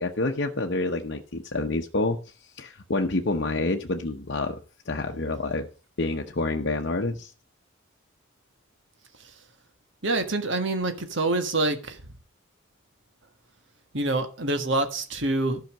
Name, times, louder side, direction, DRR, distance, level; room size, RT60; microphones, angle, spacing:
voice 1, 0.0-2.2 2.6-4.6 4.9-5.7 6.0-7.3, left 2 dB, 55° left, 0.8 m, -28 dB
voice 2, 10.0-12.0 13.9-15.6, right 2 dB, 60° right, 1.6 m, -26 dB
12.0 x 5.7 x 6.4 m
head